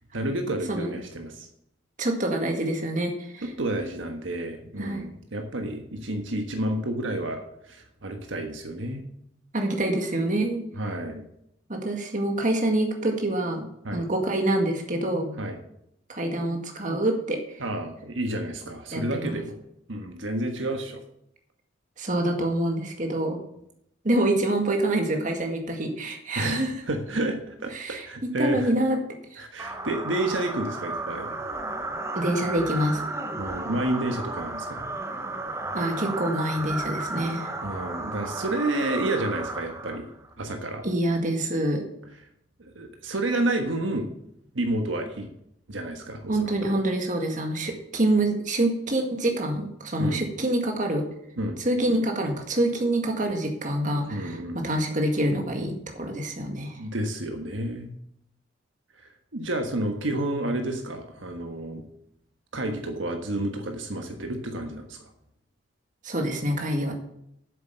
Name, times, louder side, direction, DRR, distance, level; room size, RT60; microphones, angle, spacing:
voice 1, 0.1-1.5 3.4-9.0 10.8-11.2 13.8-14.1 15.4-15.6 17.6-19.6 19.9-21.0 26.3-28.7 29.4-31.4 33.3-34.9 37.6-40.1 40.4-40.8 42.6-44.1 44.5-45.3 45.7-46.5 50.0-50.2 51.4-51.6 54.1-54.6 56.8-57.9 59.3-61.8 62.5-65.0, right 1 dB, 75° right, 4 dB, 1.4 m, -30 dB
voice 2, 2.0-3.5 4.8-5.0 9.5-10.6 11.7-15.4 16.1-17.4 18.9-19.4 22.0-23.4 24.0-26.8 27.7-28.1 28.4-29.0 29.3-29.4 32.2-33.0 35.7-37.6 40.8-41.8 46.3-51.0 51.6-56.8 66.0-66.9, right 1 dB, 40° right, 3 dB, 1.9 m, -26 dB
sound 1, 29.6-40.3, right 2 dB, 15° right, 0.9 m, -33 dB
8.6 x 7.4 x 6.8 m, 0.75 s
head